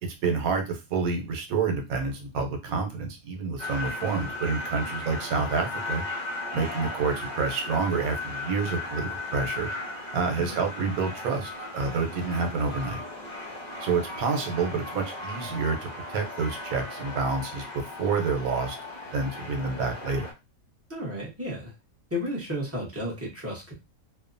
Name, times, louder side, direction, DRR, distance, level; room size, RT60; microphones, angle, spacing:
voice 1, 0.0-6.0 6.5-9.7 10.1-13.0 13.8-18.8 19.1-20.3, right 4 dB, 90° right, 4 dB, 1.2 m, -28 dB
sound 1, 3.6-20.3, left 2 dB, 40° left, 0.7 m, -36 dB
voice 2, 20.9-21.7 22.1-23.7, left 1 dB, 15° right, -3 dB, 0.8 m, -33 dB
2.8 x 2.1 x 2.5 m, 0.26 s
omnidirectional pair, 1.5 m